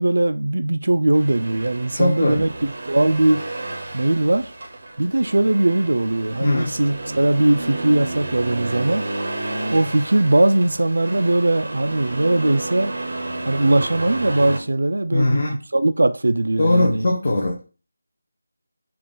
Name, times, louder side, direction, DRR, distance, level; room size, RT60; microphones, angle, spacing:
voice 1, 0.0-2.5 2.9-3.4 3.9-4.5 5.0-9.1 9.7-12.9 13.5-17.1, right 2 dB, 75° right, 0.3 m, -19 dB
Accelerating revving vroom, 1.1-14.6, right 2 dB, 40° right, 0.6 m, -31 dB
voice 2, 1.9-2.4 6.4-6.8 15.1-15.6 16.6-17.6, left 2 dB, 35° left, 0.6 m, -20 dB
3.8 x 2.4 x 3.6 m
figure-of-eight pair, 180°, 0 cm